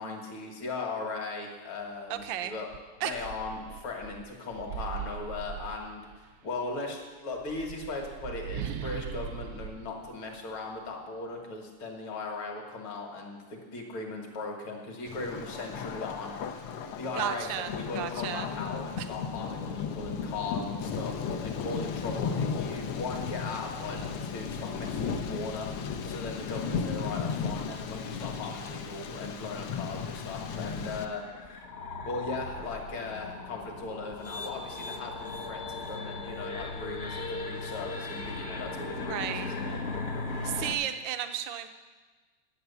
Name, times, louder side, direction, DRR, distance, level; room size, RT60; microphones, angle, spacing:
voice 1, 0.0-2.7 3.0-6.0 6.4-16.6 17.0-25.7 26.0-31.6 32.1-39.8, left 3 dB, 70° left, 1 dB, 2.5 m, -38 dB
voice 2, 2.1-2.5 3.0-3.1 17.1-18.5 19.0-19.1 39.0-39.5 40.4-41.7, right 11 dB, 70° right, 8 dB, 1.3 m, -33 dB
sound 1, 2.2-2.3 2.7-6.3 7.3-10.9, right 7 dB, 90° right, 0.8 m, -40 dB
Thunder, 15.1-31.1, left 6 dB, 85° left, 1.7 m, -35 dB
sound 2, 29.2-40.7, left 3 dB, 50° left, 0.7 m, -38 dB
10.5 x 8.7 x 6.9 m, 1.3 s
omnidirectional pair, 2.4 m